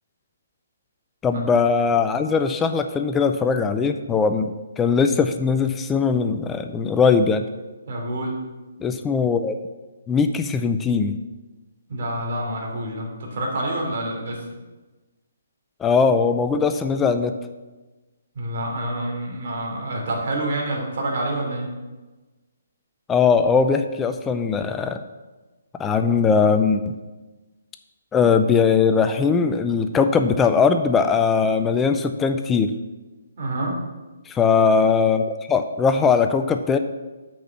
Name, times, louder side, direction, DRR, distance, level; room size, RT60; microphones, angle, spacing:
voice 1, 1.2-7.4 8.8-9.6 10.1-11.1 15.8-17.3 23.1-25.0 25.8-26.9 28.1-32.7 34.3-36.8, left 5 dB, 10° left, 8 dB, 0.5 m, -20 dB
voice 2, 7.9-8.4 11.9-14.5 18.3-21.7 33.4-33.8, right 1 dB, 55° right, -1 dB, 2.9 m, -27 dB
6.1 x 6.0 x 7.2 m, 1.2 s
hypercardioid pair, 145°, 0 cm